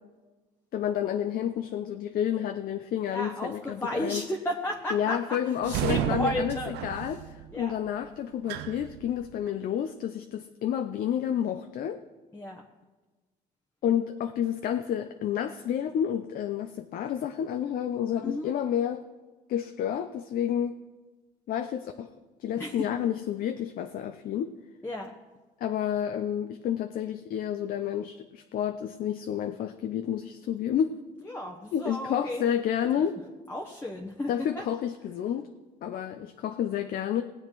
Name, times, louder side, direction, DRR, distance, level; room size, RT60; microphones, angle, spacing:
voice 1, 0.7-4.2 4.9-7.2 7.5-12.0 13.8-19.0 19.5-20.7 21.5-22.1 22.4-24.5 25.6-30.9 31.7-33.2 34.3-35.5 35.8-37.2, left 9 dB, 60° left, 7 dB, 0.7 m, -30 dB
voice 2, 3.1-7.2 7.5-7.7 12.3-12.6 18.2-18.5 22.6-22.9 24.8-25.1 31.2-32.5 33.5-34.6, left 1 dB, 10° left, 1 dB, 1.2 m, -34 dB
sound 1, 5.6-9.5, right 12 dB, 90° right, 0.6 m, -33 dB
19.0 x 8.2 x 4.6 m, 1.3 s
cardioid pair, 110°, 17 cm